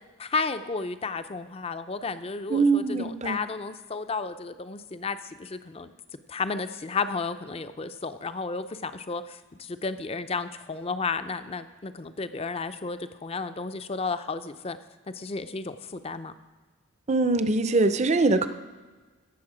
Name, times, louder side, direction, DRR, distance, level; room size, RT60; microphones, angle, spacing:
voice 1, 0.2-5.9 6.3-14.8 15.1-16.3, left 4 dB, 25° left, 11 dB, 0.4 m, -33 dB
voice 2, 2.5-3.4 17.1-18.5, right 3 dB, 30° right, 11 dB, 0.5 m, -23 dB
17.0 x 6.8 x 4.9 m, 1.4 s
head